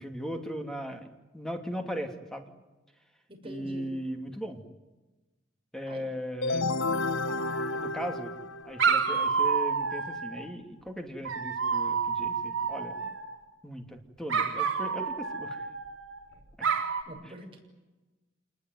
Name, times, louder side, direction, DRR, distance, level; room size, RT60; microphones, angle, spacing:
voice 1, 0.0-2.5 3.4-4.6 5.7-6.7 7.7-13.1 13.6-15.7 16.6-16.7, equal, 5° left, 4 dB, 2.8 m, -38 dB
voice 2, 3.3-3.9 5.8-6.1 17.0-17.6, equal, 30° right, 1 dB, 6.7 m, -45 dB
sound 1, 6.4-9.1, left 3 dB, 80° left, 0.9 m, -31 dB
Dog, 7.3-8.1 8.8-10.4 11.2-13.4 14.3-16.2 16.6-17.0, right 5 dB, 75° right, 4.4 m, -29 dB
27.5 x 20.5 x 9.5 m, 1.1 s
head